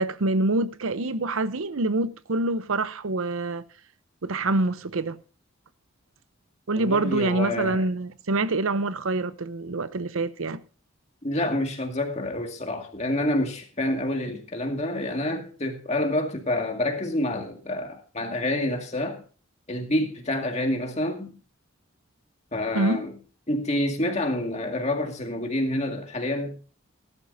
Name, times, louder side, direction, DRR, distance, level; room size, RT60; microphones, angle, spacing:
voice 1, 0.0-3.6 4.2-5.2 6.7-10.6 22.7-23.0, right 2 dB, 75° right, 0.7 m, -26 dB
voice 2, 6.8-7.8 11.2-19.2 19.7-21.3 22.5-23.1 23.5-26.6, left 1 dB, 30° left, 2.1 m, -28 dB
18.0 x 12.0 x 2.7 m
head